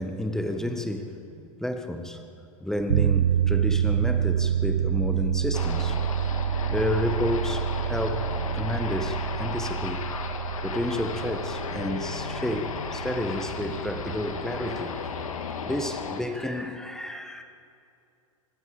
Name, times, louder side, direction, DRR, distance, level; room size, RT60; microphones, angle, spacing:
voice 1, 0.0-2.2 2.6-6.0 6.7-10.1 10.6-14.9 15.6-17.4, left 1 dB, 5° left, 6 dB, 1.5 m, -31 dB
sound 1, 2.9-14.8, right 9 dB, 75° right, 0.4 m, -28 dB
sound 2, 5.5-16.2, left 6 dB, 75° left, 1.9 m, -35 dB
25.0 x 21.5 x 5.1 m, 2.5 s
hypercardioid pair, 95°, 17 cm